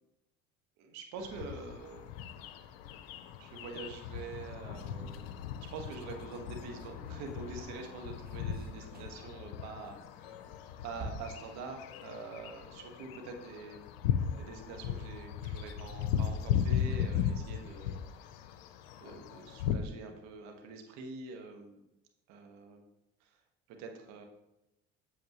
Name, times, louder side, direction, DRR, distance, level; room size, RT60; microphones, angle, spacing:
voice 1, 0.8-2.4 3.4-5.3 5.7-10.4 10.8-13.9 14.4-18.0 19.0-21.8 22.3-22.8 23.2-23.3 23.7-24.3, right 4 dB, 70° right, 3 dB, 1.5 m, -45 dB
sound 1, 1.2-19.8, left 8 dB, 90° left, 0.6 m, -37 dB
sound 2, 1.8-14.3 14.7-14.8 15.1-15.2, right 2 dB, 30° right, 1.9 m, -55 dB
8.3 x 7.2 x 3.1 m, 0.89 s
supercardioid pair, 80°, 29 cm